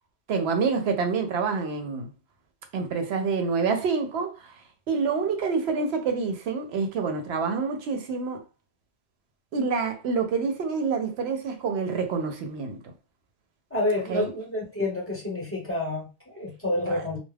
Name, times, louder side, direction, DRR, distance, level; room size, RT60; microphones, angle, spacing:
voice 1, 0.3-2.1 2.7-4.5 4.9-8.4 9.5-12.8 14.1-14.3 16.9-17.0, right 5 dB, 75° right, 0.8 m, -27 dB
voice 2, 13.7-17.2, left 2 dB, 15° left, 1.0 m, -29 dB
2.3 x 2.2 x 3.2 m
omnidirectional pair, 1.1 m